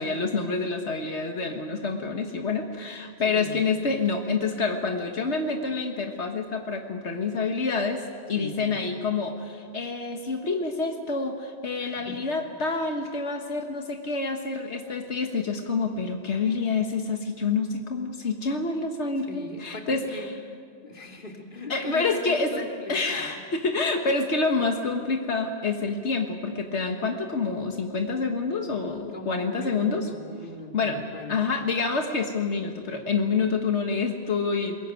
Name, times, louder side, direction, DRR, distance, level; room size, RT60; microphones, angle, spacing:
voice 1, 0.0-20.2 21.7-22.6 22.9-30.1 30.7-31.0 31.3-34.9, left 4 dB, 90° left, 3 dB, 1.8 m, -27 dB
voice 2, 3.3-3.6 8.3-8.9 11.8-12.2 19.2-20.3 20.8-23.4 29.1-31.4, left 2 dB, 50° left, 2 dB, 2.7 m, -40 dB
22.5 x 21.0 x 9.1 m, 2.1 s
omnidirectional pair, 1.1 m